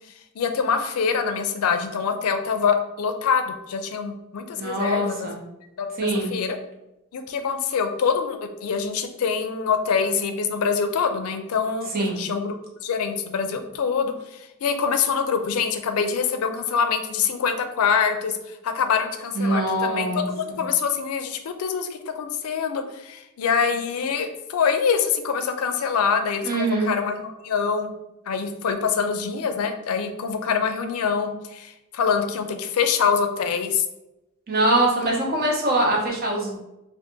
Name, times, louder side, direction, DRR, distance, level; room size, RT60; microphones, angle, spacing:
voice 1, 0.4-5.3 5.8-6.6 7.1-12.5 12.8-27.9 28.3-33.8, left 6 dB, 85° left, 7 dB, 0.4 m, -25 dB
voice 2, 4.6-5.3 6.0-6.3 11.9-12.2 19.3-20.6 26.4-26.9 34.5-36.6, right 1 dB, 45° right, -2 dB, 0.8 m, -23 dB
2.6 x 2.5 x 3.6 m, 0.94 s
head